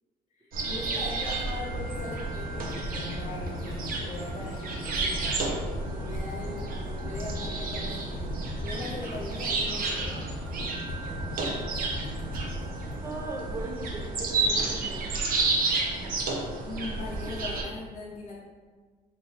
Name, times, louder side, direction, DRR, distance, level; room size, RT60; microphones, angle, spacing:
voice 1, 0.4-5.4 5.9-8.3 8.6-10.2 16.6-18.4, left 2 dB, 45° left, -6 dB, 0.7 m, -40 dB
sound 1, 0.5-17.6, right 3 dB, 60° right, 0.7 m, -31 dB
sound 2, 2.0-14.1, left 2 dB, 70° left, 0.9 m, -39 dB
voice 2, 13.0-15.1, right 2 dB, 15° right, 0 dB, 0.5 m, -38 dB
4.0 x 3.0 x 2.8 m, 1.5 s
cardioid pair, 110°, 17 cm